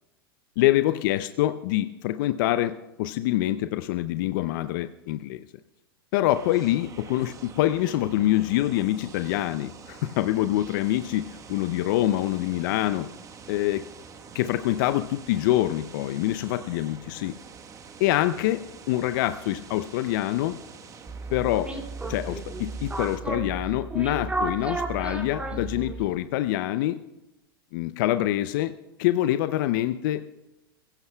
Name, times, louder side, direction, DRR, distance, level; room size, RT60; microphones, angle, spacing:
voice 1, 0.6-5.5 6.1-13.1 13.5-13.8 14.3-17.3 18.0-20.6 21.3-21.7 22.1-27.0 27.7-28.7 29.0-30.2, left 14 dB, 60° left, 11 dB, 0.5 m, -25 dB
sound 1, 6.3-23.2, right 6 dB, 25° right, 1.2 m, -46 dB
sound 2, 21.1-26.2, right 2 dB, 10° right, 2.4 m, -33 dB
22.5 x 16.0 x 2.3 m, 0.95 s
hypercardioid pair, 100°, 12 cm